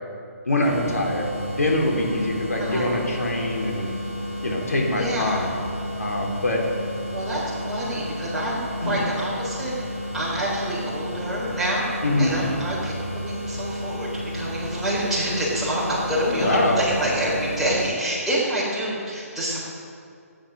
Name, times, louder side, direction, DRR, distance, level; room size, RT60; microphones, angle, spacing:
voice 1, 0.5-3.9 4.4-5.5 6.0-6.6 8.8-9.0 12.0-12.3 16.2-16.8, left 1 dB, 75° left, -1 dB, 3.4 m, -24 dB
sound 1, 0.6-17.9, left 1 dB, 50° left, 4.5 m, -32 dB
voice 2, 2.6-3.0 5.0-5.5 7.1-7.4 7.7-9.7 10.1-11.9 12.2-12.9 13.2-19.6, right 1 dB, 5° right, -8 dB, 3.8 m, -27 dB
16.0 x 10.0 x 6.3 m, 2.3 s
figure-of-eight pair, 140°, 8 cm